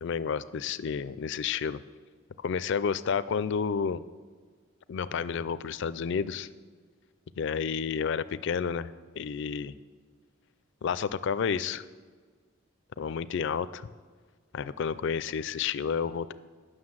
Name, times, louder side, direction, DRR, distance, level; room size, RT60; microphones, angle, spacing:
voice 1, 0.0-1.8 2.4-4.0 4.9-6.5 7.4-9.7 10.8-11.8 13.0-13.9 14.5-16.3, left 6 dB, 60° left, 15 dB, 0.4 m, -30 dB
9.6 x 6.5 x 7.4 m, 1.5 s
head